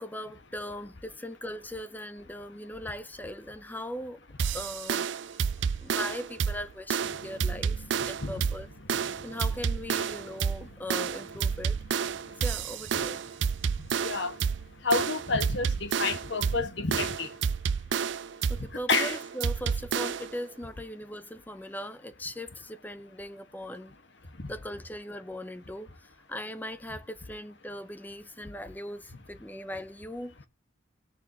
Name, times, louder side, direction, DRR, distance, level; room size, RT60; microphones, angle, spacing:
voice 1, 0.0-4.2 4.5-5.1 5.8-8.7 9.2-11.8 12.4-13.2 18.5-24.0 24.5-30.5, left 1 dB, 10° left, 0.6 m, -39 dB
sound 1, 4.4-20.4, right 6 dB, 65° right, 0.4 m, -30 dB
voice 2, 5.3-5.8 8.2-8.5 9.0-9.2 12.2-12.4 13.0-13.1 13.7-17.8 18.6-19.2 24.2-24.5 28.4-28.5, left 4 dB, 65° left, 1.5 m, -32 dB
sound 2, 7.0-17.3, left 1 dB, 85° left, 1.6 m, -53 dB
18.0 x 7.0 x 2.9 m
head